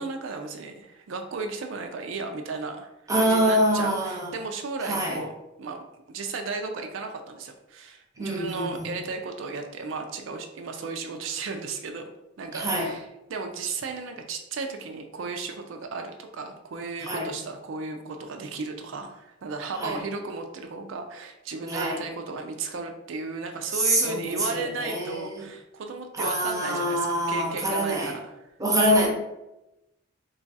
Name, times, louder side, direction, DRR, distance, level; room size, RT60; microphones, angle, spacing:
voice 1, 0.0-12.1 12.4-28.5 28.9-29.0, right 4 dB, 75° right, 4 dB, 0.4 m, -35 dB
voice 2, 3.1-4.3 4.9-5.2 8.2-8.9 12.5-12.9 17.0-17.3 19.8-20.0 21.7-22.0 23.8-24.4 24.8-25.0 25.3-25.4 26.2-28.1 28.6-29.1, right 1 dB, 15° right, 0 dB, 0.7 m, -24 dB
3.0 x 2.3 x 3.9 m, 0.93 s
head